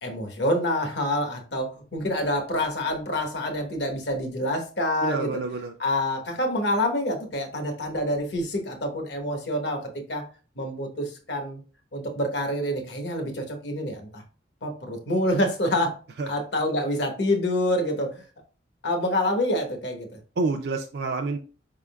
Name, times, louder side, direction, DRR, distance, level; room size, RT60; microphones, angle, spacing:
voice 1, 0.0-5.3 5.8-10.2 10.6-11.6 11.9-14.2 14.6-16.0 16.3-18.2 18.8-20.2, left 1 dB, 70° left, 4 dB, 1.0 m, -27 dB
voice 2, 5.0-5.7 16.2-16.3 20.4-21.4, right 3 dB, 60° right, 3 dB, 0.4 m, -28 dB
5.0 x 3.6 x 2.2 m, 0.36 s
head